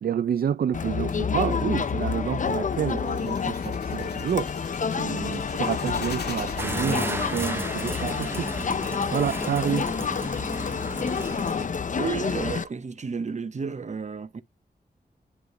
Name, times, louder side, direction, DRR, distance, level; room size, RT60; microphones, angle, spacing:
voice 1, 0.0-8.5 9.1-9.9, right 8 dB, 65° right, 0.4 m, -29 dB
Crowd, 0.7-12.6, left 6 dB, 50° left, 0.6 m, -29 dB
sound 1, 3.0-7.5, left 5 dB, 85° left, 1.7 m, -40 dB
sound 2, 6.6-11.7, right 2 dB, 15° right, 0.6 m, -34 dB
voice 2, 12.0-14.4, right 5 dB, 45° right, 0.8 m, -32 dB
11.0 x 3.7 x 3.1 m
wide cardioid pair, 130°, 17 cm